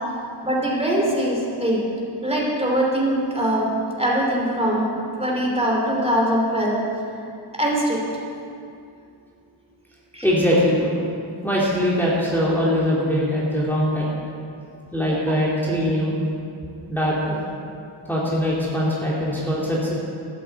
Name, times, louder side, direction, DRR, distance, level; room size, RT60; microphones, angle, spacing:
voice 1, 0.4-1.8 2.2-3.7 4.0-4.9 5.2-6.8 7.5-8.0 10.1-10.3, right 1 dB, 10° right, -3 dB, 3.1 m, -22 dB
voice 2, 10.2-10.9 11.4-14.1 14.9-16.2 16.9-17.4 18.0-19.9, equal, 5° left, -7 dB, 2.9 m, -22 dB
13.5 x 9.2 x 8.2 m, 2.5 s
wide cardioid pair, 95°, 49 cm